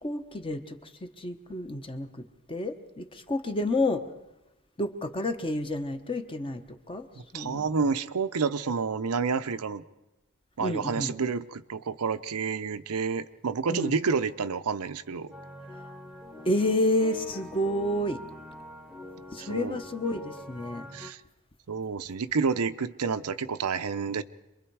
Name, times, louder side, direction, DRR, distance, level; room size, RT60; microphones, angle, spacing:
voice 1, 0.0-2.2 2.5-4.1 4.8-7.1 7.3-7.7 10.6-11.1 13.7-13.9 16.4-18.2 19.3-20.9, left 1 dB, 25° left, 7 dB, 1.0 m, -30 dB
voice 2, 7.3-9.8 10.6-15.3 19.4-19.8 20.9-21.2 21.7-24.2, right 5 dB, 85° right, 11 dB, 0.7 m, -29 dB
sound 1, 15.3-21.1, left 1 dB, ahead, 1.0 m, -44 dB
27.0 x 22.0 x 4.7 m, 0.97 s
head